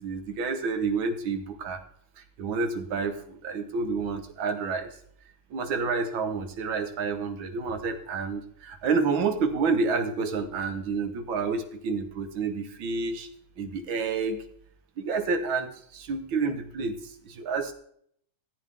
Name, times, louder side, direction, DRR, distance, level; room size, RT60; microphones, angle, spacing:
voice 1, 0.0-1.8 2.4-4.9 5.5-13.3 13.6-14.4 15.0-17.7, right 4 dB, 65° right, 6 dB, 1.9 m, -29 dB
14.5 x 8.3 x 3.6 m, 0.66 s
omnidirectional pair, 2.4 m